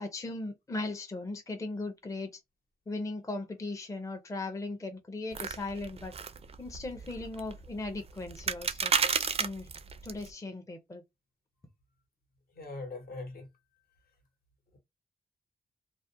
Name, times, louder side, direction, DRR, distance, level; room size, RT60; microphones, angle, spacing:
voice 1, 0.0-2.4 2.9-6.1 6.6-8.9 9.4-9.7 10.0-11.0, left 2 dB, 20° left, 0.5 m, -38 dB
sound 1, 5.3-10.3, right 6 dB, 40° right, 0.4 m, -33 dB
voice 2, 12.5-13.5, left 2 dB, 70° left, 1.0 m, -41 dB
2.4 x 2.0 x 2.5 m
wide cardioid pair, 95°, 16 cm